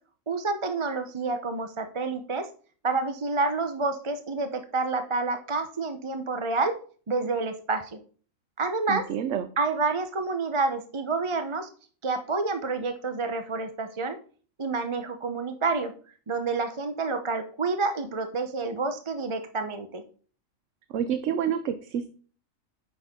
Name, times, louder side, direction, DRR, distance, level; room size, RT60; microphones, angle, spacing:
voice 1, 0.3-2.5 2.8-6.7 7.1-8.0 8.6-9.1 9.6-11.7 12.0-14.2 14.6-15.9 16.3-20.0, right 3 dB, 30° right, 8 dB, 0.6 m, -28 dB
voice 2, 8.9-9.5 20.9-22.1, right 8 dB, 75° right, 10 dB, 1.0 m, -28 dB
9.2 x 6.3 x 3.6 m, 0.42 s
omnidirectional pair, 1.3 m